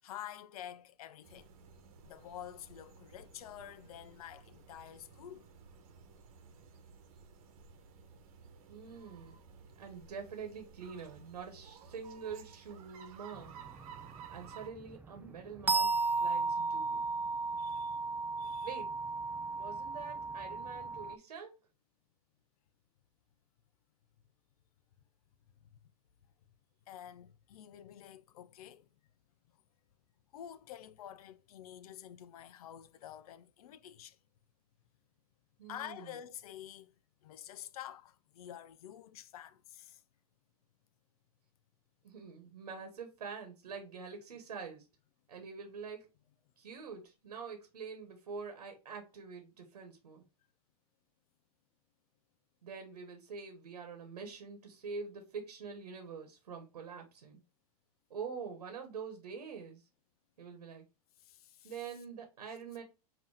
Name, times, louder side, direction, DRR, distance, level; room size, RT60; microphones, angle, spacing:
voice 1, 0.0-1.5 2.0-5.5 17.6-18.0 18.4-18.8 25.6-25.8 26.9-28.9 30.3-34.2 35.6-37.0 37.2-40.0 61.2-61.9, left 10 dB, 70° left, 0.6 m, -49 dB
sound 1, 1.2-14.7, right 6 dB, 65° right, 1.0 m, -55 dB
voice 2, 8.7-9.4 9.8-13.5 14.3-17.1 18.6-18.9 19.6-21.5 35.6-36.1 42.0-44.8 45.3-46.1 46.6-50.3 52.6-57.4 58.1-59.8 60.4-60.8 61.6-62.8, right 5 dB, 85° right, 1.1 m, -45 dB
sound 2, 13.3-21.2, right 3 dB, 10° right, 0.3 m, -35 dB
5.4 x 2.9 x 3.3 m
hypercardioid pair, 100°, 20 cm